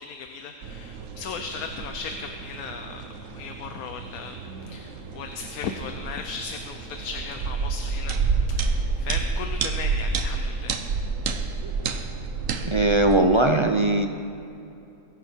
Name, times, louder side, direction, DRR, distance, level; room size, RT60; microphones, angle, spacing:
voice 1, 0.0-8.2 8.5-10.8, left 5 dB, 80° left, 6 dB, 1.3 m, -36 dB
sound 1, 0.6-13.2, right 4 dB, 65° right, 1.2 m, -29 dB
voice 2, 12.6-14.1, right 2 dB, 45° right, 5 dB, 0.3 m, -20 dB
22.0 x 9.9 x 4.5 m, 2.7 s
omnidirectional pair, 1.5 m